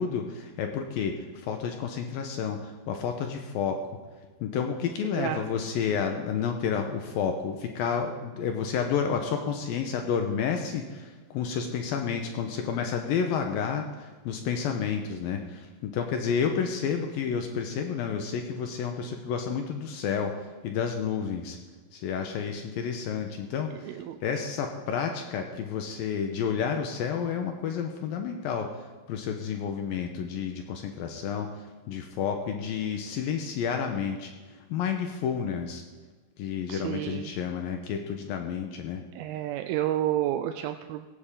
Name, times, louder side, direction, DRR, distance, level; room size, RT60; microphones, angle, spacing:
voice 1, 0.0-3.8 4.4-21.6 21.9-34.3 34.7-35.8 36.4-39.0, left 7 dB, 75° left, 4 dB, 2.6 m, -30 dB
voice 2, 23.7-24.2 36.7-37.3 39.1-41.1, right 13 dB, 85° right, 7 dB, 2.4 m, -30 dB
17.0 x 16.0 x 3.7 m, 1.3 s
omnidirectional pair, 4.4 m